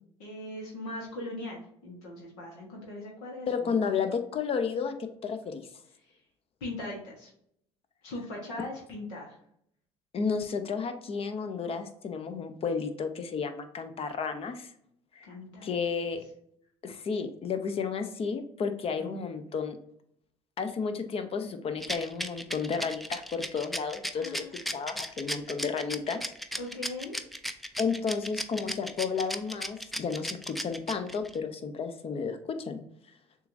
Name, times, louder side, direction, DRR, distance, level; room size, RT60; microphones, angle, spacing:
voice 1, 0.2-3.9 6.0-6.2 6.6-7.3 8.0-9.4 15.2-15.7 19.0-19.2 24.1-24.5 26.6-27.2, left 1 dB, 75° left, -2 dB, 1.2 m, -40 dB
voice 2, 3.5-4.9 5.2-5.6 10.1-14.7 15.1-15.3 15.6-16.2 16.8-19.8 20.6-24.5 24.7-26.2 27.8-32.8, left 5 dB, 40° left, 8 dB, 0.7 m, -32 dB
Rattle, 21.8-31.4, equal, ahead, 0.4 m, -35 dB
6.7 x 2.5 x 2.6 m, 0.70 s
hypercardioid pair, 65°, 15 cm